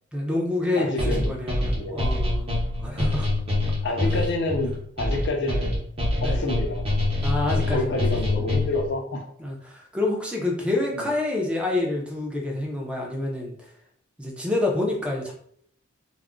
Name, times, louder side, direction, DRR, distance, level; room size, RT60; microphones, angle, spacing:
voice 1, 0.1-3.3 6.2-6.4 7.2-8.0 8.3-8.5 9.4-13.7 14.2-15.3, left 2 dB, 5° right, -1 dB, 0.5 m, -27 dB
voice 2, 0.8-1.3 1.8-2.0 3.8-5.8 6.2-6.9 7.5-9.2 10.9-11.1, left 2 dB, 60° left, 3 dB, 0.5 m, -28 dB
sound 1, 1.0-8.9, left 2 dB, 30° right, 0.8 m, -25 dB
2.4 x 2.0 x 3.6 m, 0.65 s
head